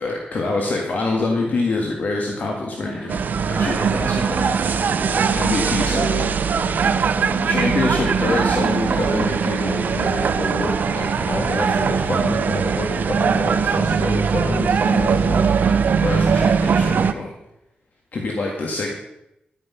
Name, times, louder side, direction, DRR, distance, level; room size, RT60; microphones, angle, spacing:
voice 1, 0.0-3.1 3.5-4.5 5.4-6.3 7.4-15.5 15.9-17.3 18.1-18.9, left 3 dB, 60° left, 0 dB, 1.7 m, -26 dB
sound 1, 2.8-17.2, equal, 10° left, 5.9 m, -33 dB
sound 2, 3.1-17.1, right 6 dB, 65° right, 0.6 m, -20 dB
10.5 x 9.8 x 5.6 m, 0.85 s
wide cardioid pair, 135°, 3 cm